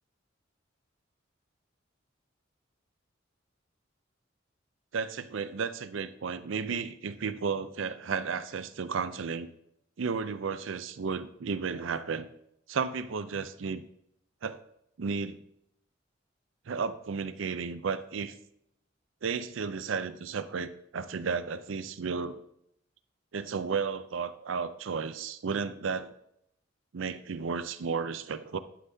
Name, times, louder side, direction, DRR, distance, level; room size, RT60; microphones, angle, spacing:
voice 1, 4.9-9.5 10.0-12.3 12.7-13.8 14.4-14.6 15.0-15.4 16.7-18.3 19.2-22.4 23.3-26.1 26.9-28.6, right 5 dB, 75° right, 12 dB, 0.5 m, -33 dB
11.5 x 5.6 x 2.7 m, 0.74 s
head